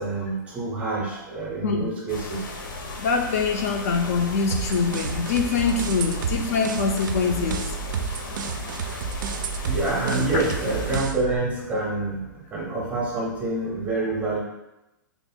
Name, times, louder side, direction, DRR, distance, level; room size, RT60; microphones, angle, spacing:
voice 1, 0.0-2.4 8.6-8.8 9.6-14.4, right 2 dB, 10° right, -3 dB, 0.6 m, -27 dB
sound 1, 2.1-11.0, left 2 dB, 80° left, 0.7 m, -36 dB
voice 2, 2.9-7.8 8.9-9.0 10.3-10.4, left 5 dB, 45° left, 3 dB, 0.4 m, -24 dB
sound 2, 4.5-11.4, right 6 dB, 65° right, 0.4 m, -31 dB
3.3 x 2.2 x 4.3 m, 0.93 s
hypercardioid pair, 165°, 11 cm